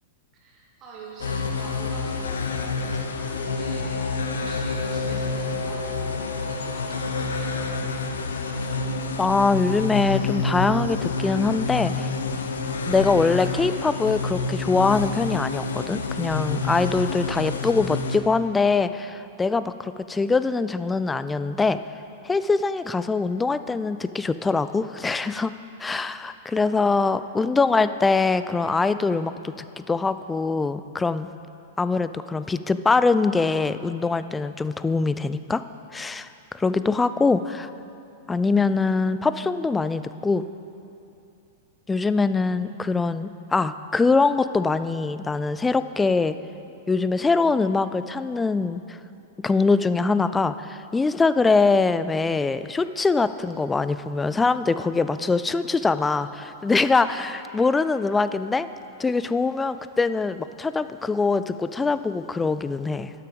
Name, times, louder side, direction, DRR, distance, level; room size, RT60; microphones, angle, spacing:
voice 1, 0.3-7.6 26.9-27.2, right 2 dB, 35° right, -3 dB, 2.2 m, -44 dB
sound 1, 1.2-18.2, left 4 dB, 70° left, 0.9 m, -28 dB
voice 2, 9.2-12.1 12.9-21.8 22.2-25.5 25.8-31.3 31.8-35.6 35.9-37.7 38.3-40.5 41.9-46.3 46.9-49.0 49.4-58.7 59.0-63.1, left 4 dB, 10° left, 13 dB, 0.4 m, -23 dB
12.0 x 8.6 x 5.2 m, 2.7 s
figure-of-eight pair, 100°, 0 cm